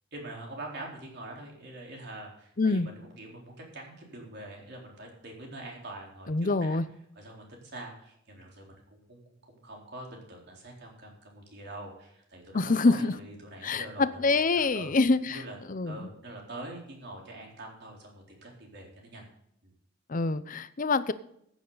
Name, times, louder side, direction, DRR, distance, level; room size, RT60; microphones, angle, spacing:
voice 1, 0.1-6.8 7.2-14.9 15.3-15.6 15.8-19.3 19.6-19.7, right 1 dB, 60° right, 4.0 m, -44 dB
voice 2, 2.6-2.9 6.3-6.8 12.5-13.1 13.6-15.4 15.7-16.1 20.1-21.1, left 3 dB, 45° left, 0.7 m, -26 dB
14.5 x 9.3 x 4.0 m
head